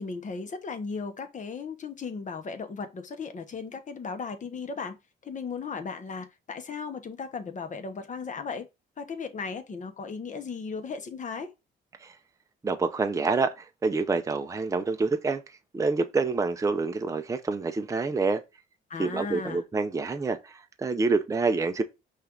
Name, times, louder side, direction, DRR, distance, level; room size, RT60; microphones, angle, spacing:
voice 1, 0.0-5.0 5.2-8.7 9.0-11.5 18.9-19.6, left 5 dB, 40° left, 0.9 m, -36 dB
voice 2, 12.6-15.4 15.7-18.4 19.0-21.8, right 4 dB, 15° right, 0.5 m, -27 dB
5.5 x 2.5 x 3.7 m
cardioid pair, 90°, 20 cm